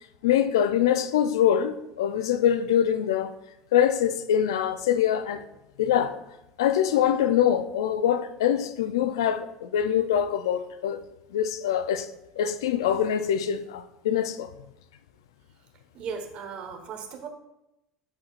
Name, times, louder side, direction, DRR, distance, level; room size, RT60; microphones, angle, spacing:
voice 1, 0.2-3.3 3.7-5.4 5.8-6.2 6.6-11.0 11.3-12.1 12.4-14.5, left 9 dB, 90° left, 0.5 m, -24 dB
voice 2, 15.9-17.3, right 6 dB, 55° right, 1.4 m, -36 dB
12.5 x 4.3 x 2.5 m
supercardioid pair, 95°, 2 cm